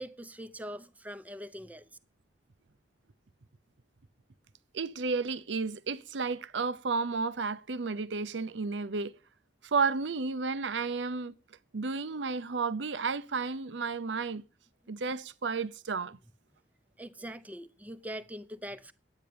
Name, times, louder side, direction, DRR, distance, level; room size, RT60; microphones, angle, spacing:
voice 1, 0.0-1.9 17.0-18.9, equal, 10° right, 0.7 m, -42 dB
voice 2, 4.7-9.1 9.6-11.3 11.7-14.4 14.9-16.2, right 4 dB, 85° right, 0.7 m, -32 dB
10.5 x 9.0 x 6.8 m
head